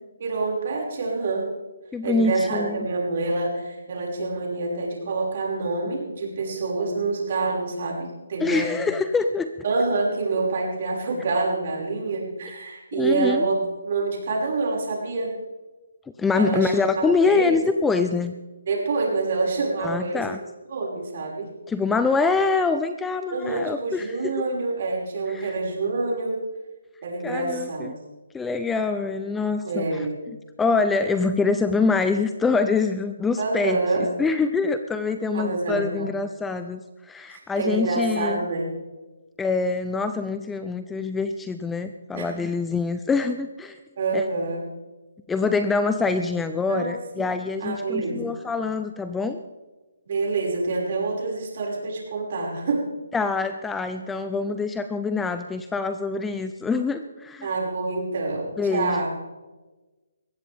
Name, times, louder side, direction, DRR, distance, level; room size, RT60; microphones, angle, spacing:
voice 1, 0.2-1.5 2.0-8.7 9.6-13.5 13.8-15.3 16.3-16.7 17.2-17.6 18.7-20.3 20.7-21.5 23.3-26.4 27.0-27.9 29.6-30.2 33.4-34.1 35.3-36.1 37.3-38.7 42.1-42.3 44.0-44.6 46.7-47.3 47.6-48.4 50.1-52.9 57.4-59.1, right 3 dB, 50° right, -2 dB, 5.8 m, -27 dB
voice 2, 1.9-2.8 8.4-9.5 13.0-13.5 16.2-18.3 19.8-20.4 21.7-24.3 25.3-25.5 27.2-27.9 28.3-30.1 30.6-33.8 34.2-38.4 39.4-43.8 44.1-44.2 45.3-49.4 53.1-57.5 58.6-59.1, left 4 dB, 5° left, 9 dB, 0.5 m, -25 dB
21.5 x 16.5 x 3.6 m, 1.2 s
hypercardioid pair, 165°, 0 cm